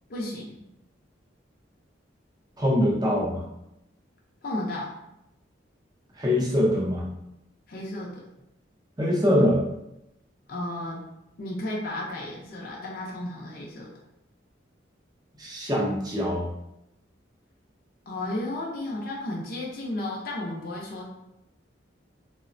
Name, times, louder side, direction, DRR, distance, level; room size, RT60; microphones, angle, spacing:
voice 1, 0.1-0.6 4.4-4.9 7.7-8.2 10.5-11.0 11.4-13.9 18.1-21.0, left 1 dB, 50° left, -3 dB, 0.5 m, -33 dB
voice 2, 2.6-3.5 6.2-7.1 9.0-9.6 15.4-16.5, equal, 20° right, -3 dB, 0.5 m, -23 dB
3.0 x 2.0 x 2.5 m, 0.86 s
head